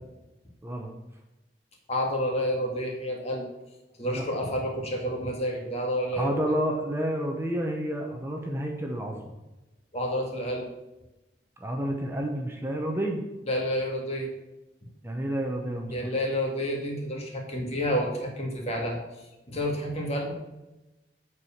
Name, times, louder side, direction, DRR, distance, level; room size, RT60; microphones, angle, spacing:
voice 1, 1.9-3.5 4.0-6.3 9.9-10.7 13.5-14.3 15.9-19.0 19.5-20.3, equal, 40° left, 0 dB, 2.1 m, -29 dB
voice 2, 6.2-9.2 11.6-13.2 15.0-15.9, equal, 15° right, 1 dB, 0.9 m, -30 dB
8.2 x 4.8 x 7.2 m, 1.0 s
head